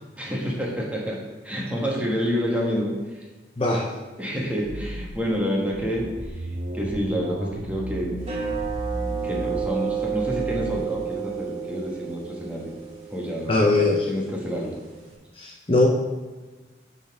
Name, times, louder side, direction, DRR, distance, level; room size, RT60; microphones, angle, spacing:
voice 1, 0.2-1.2 1.4-3.2 4.2-6.5 6.7-8.2 9.2-12.7 13.1-13.6 14.1-14.8, equal, 10° right, -3 dB, 1.3 m, -28 dB
sound 1, 4.6-5.3 5.7-10.8, right 1 dB, 65° right, 0.8 m, -34 dB
sound 2, 8.2-15.1, right 7 dB, 35° right, 2.0 m, -32 dB
voice 2, 13.5-14.1 15.4-15.9, left 2 dB, 30° left, -1 dB, 0.7 m, -20 dB
10.5 x 4.1 x 3.6 m, 1.2 s
head